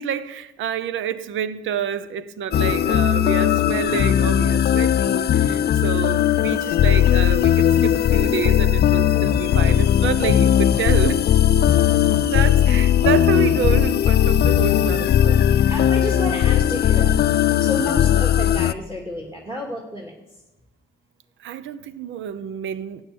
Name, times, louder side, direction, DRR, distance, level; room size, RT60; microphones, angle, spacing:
voice 1, 0.0-11.2 12.3-15.8 18.0-18.2 21.4-23.0, right 8 dB, 75° right, 0.8 m, -28 dB
sound 1, 2.5-18.7, left 10 dB, 55° left, 0.5 m, -18 dB
voice 2, 15.4-17.2 17.6-20.1, left 1 dB, 15° right, 2.5 m, -30 dB
13.0 x 9.0 x 7.0 m
cardioid pair, 90°, 20 cm